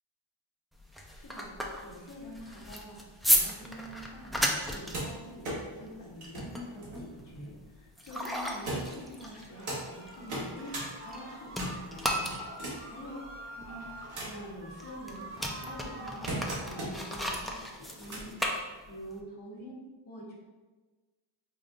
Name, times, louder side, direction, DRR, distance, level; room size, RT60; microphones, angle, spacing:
sound 1, 0.7-11.2 11.5-19.2, equal, ahead, 0.4 m, -35 dB
voice 1, 1.1-1.5 1.8-5.5 5.8-12.3 12.8-13.1 13.5-18.3 18.9-19.8 20.1-20.3, equal, 40° left, -5 dB, 1.1 m, -46 dB
sound 2, 4.5-7.9 8.6-9.8 10.2-10.9 11.3-13.0 13.6-14.5 15.1-17.1 17.8-18.5 19.5-19.6, right 1 dB, 85° right, 1.4 m, -40 dB
sound 3, 9.5-16.9, right 1 dB, 25° right, 1.3 m, -46 dB
5.2 x 2.4 x 2.5 m, 1.3 s
cardioid pair, 65°, 49 cm